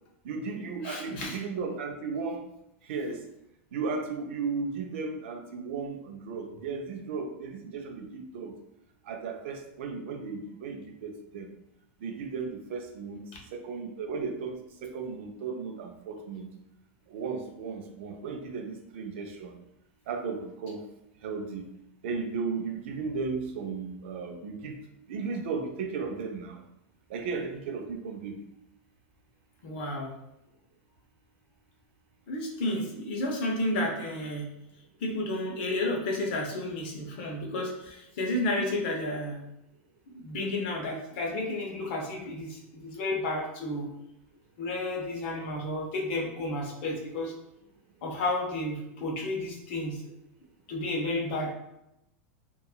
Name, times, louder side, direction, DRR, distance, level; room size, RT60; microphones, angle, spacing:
voice 1, 0.2-2.5 2.8-3.2 3.7-8.6 9.0-11.5 12.0-13.2 13.5-16.5 17.1-19.6 20.1-20.8 21.2-21.6 22.0-24.8 25.1-26.6 27.1-28.4, right 4 dB, 70° right, 4 dB, 0.5 m, -35 dB
voice 2, 0.8-1.4 13.3-13.4 29.6-30.1 32.3-34.5 35.0-39.4 40.1-43.9 44.6-47.3 48.0-50.0 50.7-51.5, left 1 dB, 55° left, 0 dB, 0.7 m, -32 dB
2.8 x 2.3 x 2.3 m, 0.84 s
supercardioid pair, 160°, 7 cm